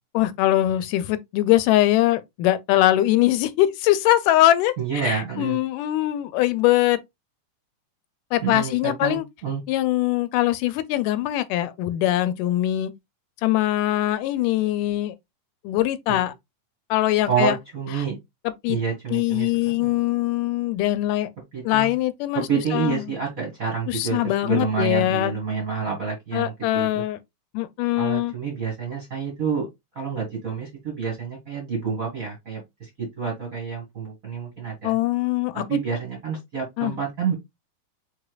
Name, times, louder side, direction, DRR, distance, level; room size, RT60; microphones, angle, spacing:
voice 1, 0.1-7.0 8.3-9.3 9.7-12.9 13.4-15.1 15.6-16.3 16.9-17.6 18.6-18.8 19.1-21.3 21.6-22.4 22.7-23.0 23.9-25.3 26.3-27.2 27.5-28.3 34.8-35.8 36.8-37.0, left 14 dB, 85° left, 2.1 m, -22 dB
voice 2, 4.8-5.6 8.4-9.6 16.1-16.2 17.3-18.2 18.7-20.0 21.5-21.9 22.3-27.0 28.0-29.7 29.9-35.0 35.5-37.3, right 6 dB, 40° right, 1.3 m, -28 dB
4.9 x 4.4 x 2.2 m
omnidirectional pair, 3.7 m